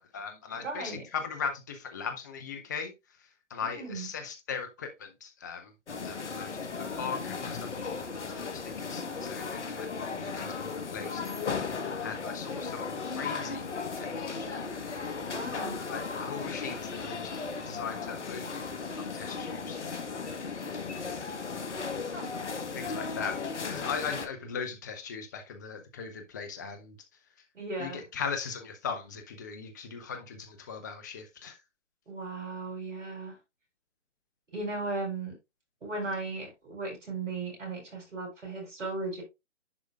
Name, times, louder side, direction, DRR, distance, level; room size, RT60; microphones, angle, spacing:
voice 1, 0.0-2.9 3.5-5.7 6.0-11.2 12.0-14.6 15.9-17.3 17.7-19.8 22.7-23.4 23.6-27.0 27.8-31.6, left 6 dB, 15° left, 0.6 m, -39 dB
voice 2, 0.6-1.0 3.6-4.1 12.6-12.8 15.3-15.8 22.1-22.3 27.5-28.0 32.1-33.4 34.5-35.3 35.8-39.2, right 3 dB, 75° right, 4.8 m, -36 dB
sound 1, 5.9-24.3, left 5 dB, 70° left, 1.4 m, -36 dB
10.5 x 4.6 x 2.4 m
figure-of-eight pair, 145°, 37 cm